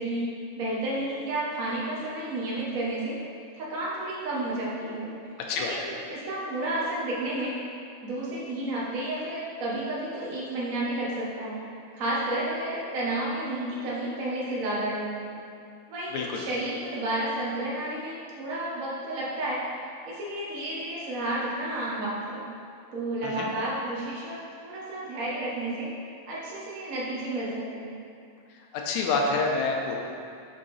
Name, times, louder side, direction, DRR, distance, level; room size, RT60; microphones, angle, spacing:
voice 1, 0.0-3.2 3.5-5.1 5.5-7.5 8.0-11.6 11.9-15.4 15.9-19.6 20.0-22.5 22.9-25.9 26.3-28.0, right 1 dB, 80° right, -6 dB, 0.7 m, -31 dB
voice 2, 5.5-5.9 16.1-16.5 23.2-23.5 28.9-30.0, left 3 dB, 85° left, 0 dB, 2.1 m, -27 dB
5.7 x 5.5 x 4.2 m, 2.4 s
omnidirectional pair, 3.3 m